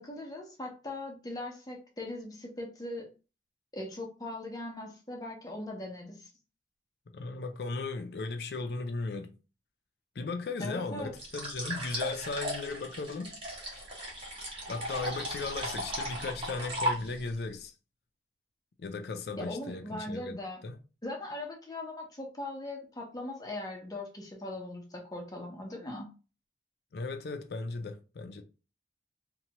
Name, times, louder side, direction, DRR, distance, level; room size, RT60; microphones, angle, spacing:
voice 1, 0.0-3.1 3.7-6.3 10.6-11.1 19.4-20.6 21.0-26.1, left 1 dB, 20° left, 0.7 m, -40 dB
voice 2, 7.1-9.4 10.2-13.3 13.7-13.8 14.7-17.7 18.8-20.4 20.6-20.8 26.9-28.4, left 3 dB, 60° left, 0.4 m, -36 dB
sound 1, 11.2-17.4, equal, 30° right, 0.9 m, -36 dB
2.8 x 2.2 x 2.8 m
head